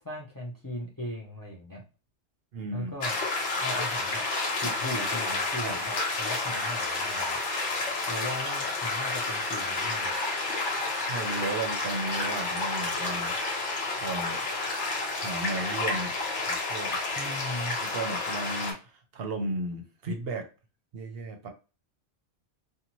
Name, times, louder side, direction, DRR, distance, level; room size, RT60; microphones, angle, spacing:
voice 1, 0.0-1.8 2.7-3.1 3.6-4.2 4.6-7.4 8.1-10.2 17.2-17.8, left 1 dB, 30° left, -3 dB, 0.4 m, -38 dB
voice 2, 2.5-2.9 4.6-4.7 5.6-5.8 11.1-13.4 13.9-14.4 15.2-16.2 16.4-17.0 17.8-20.4 20.9-21.5, right 2 dB, 65° right, 5 dB, 0.7 m, -35 dB
sound 1, 3.0-18.7, left 3 dB, 75° left, 1.2 m, -30 dB
2.7 x 2.2 x 2.9 m, 0.32 s
omnidirectional pair, 1.2 m